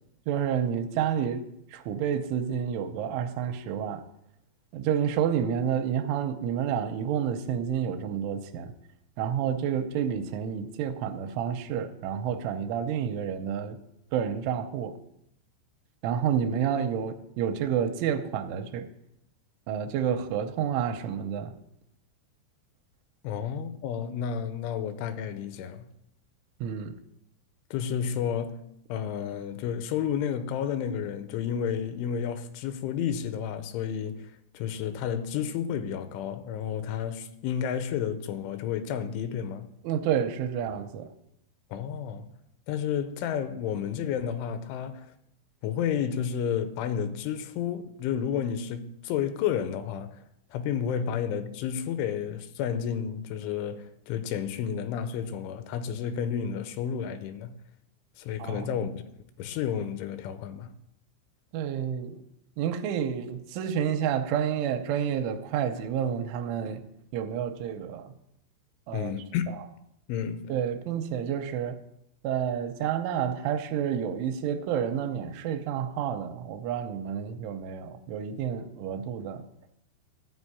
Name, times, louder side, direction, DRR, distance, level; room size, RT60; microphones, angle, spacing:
voice 1, 0.3-1.4 1.7-4.0 4.7-8.7 9.2-13.8 14.1-14.9 16.0-18.9 19.7-21.5 26.6-26.9 39.8-41.1 58.4-58.7 61.5-62.2 62.6-66.8 67.1-68.1 68.9-69.1 70.5-71.8 72.2-79.4, right 8 dB, 90° right, 3.1 m, -29 dB
voice 2, 23.2-25.9 27.7-28.6 28.9-39.7 41.7-42.3 42.7-45.1 45.6-50.2 50.5-57.6 58.2-58.9 59.4-60.7 68.9-69.4 70.1-70.5, left 8 dB, 85° left, 3.1 m, -31 dB
13.0 x 4.5 x 8.4 m
omnidirectional pair, 5.5 m